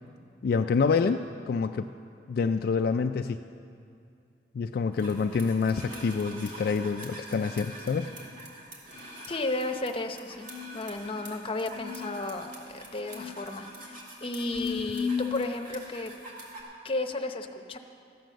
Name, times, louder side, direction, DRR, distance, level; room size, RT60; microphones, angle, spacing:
voice 1, 0.4-1.9 2.3-3.4 4.5-8.1, left 5 dB, 60° left, 6 dB, 0.3 m, -27 dB
sound 1, 5.0-16.6, left 4 dB, 50° right, 2.4 m, -39 dB
voice 2, 9.3-10.5 10.7-16.1 16.8-17.8, left 2 dB, 30° left, 5 dB, 0.7 m, -33 dB
14.0 x 9.1 x 6.3 m, 2.4 s
head